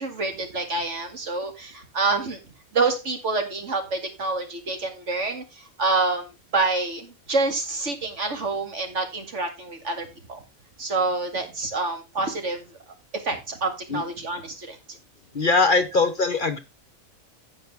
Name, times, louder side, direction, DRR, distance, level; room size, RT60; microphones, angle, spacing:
voice 1, 0.0-2.4 2.7-10.4 10.8-12.6 13.1-14.8, right 3 dB, 60° right, 5 dB, 2.5 m, -27 dB
voice 2, 15.3-16.6, left 3 dB, 45° left, 11 dB, 1.0 m, -21 dB
15.5 x 5.3 x 3.6 m, 0.26 s
omnidirectional pair, 1.4 m